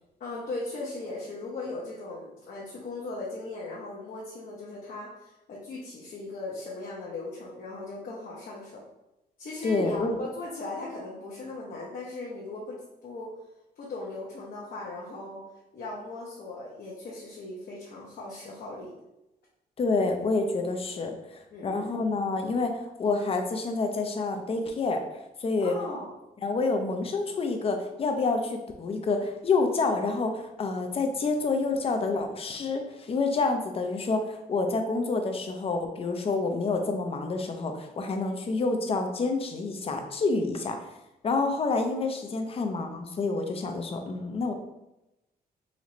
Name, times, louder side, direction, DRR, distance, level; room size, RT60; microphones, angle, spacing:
voice 1, 0.2-8.8 9.4-13.3 13.8-15.4 15.7-18.9 21.5-21.9 25.6-26.1, left 2 dB, 60° left, -5 dB, 0.9 m, -38 dB
voice 2, 9.6-10.2 19.8-25.0 25.4-25.8 26.4-40.8 41.2-44.5, left 3 dB, 35° left, 5 dB, 0.5 m, -28 dB
4.1 x 3.1 x 3.0 m, 0.93 s
cardioid pair, 135°, 17 cm